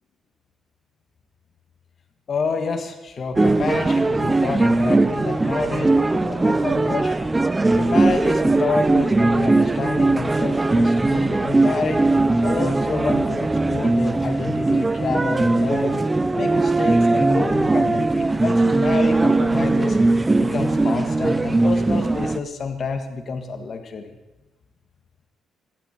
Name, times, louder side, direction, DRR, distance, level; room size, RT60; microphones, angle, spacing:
voice 1, 2.3-7.1 7.6-12.0 12.4-16.0 16.3-20.0 20.4-24.2, left 4 dB, 50° left, 6 dB, 2.1 m, -28 dB
sound 1, 3.4-22.4, right 2 dB, 20° right, 0.6 m, -19 dB
Wind instrument woodwind instrument, 11.4-16.1, right 2 dB, 70° left, 4.3 m, -35 dB
16.5 x 14.0 x 4.7 m, 1.1 s
cardioid pair, 90°, 0 cm